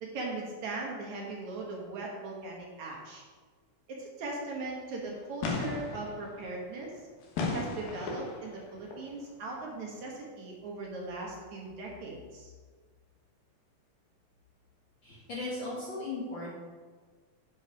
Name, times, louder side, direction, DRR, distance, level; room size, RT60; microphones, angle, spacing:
voice 1, 0.0-3.3 3.9-7.0 7.4-12.5, right 2 dB, 65° right, -2 dB, 2.4 m, -39 dB
sound 1, 4.7-4.8 5.1-5.2 5.4-9.1 9.5-9.6, left 3 dB, 80° left, 3.0 m, -36 dB
voice 2, 15.0-16.5, left 2 dB, 50° left, -6 dB, 1.6 m, -37 dB
9.6 x 5.2 x 5.1 m, 1.5 s
omnidirectional pair, 4.0 m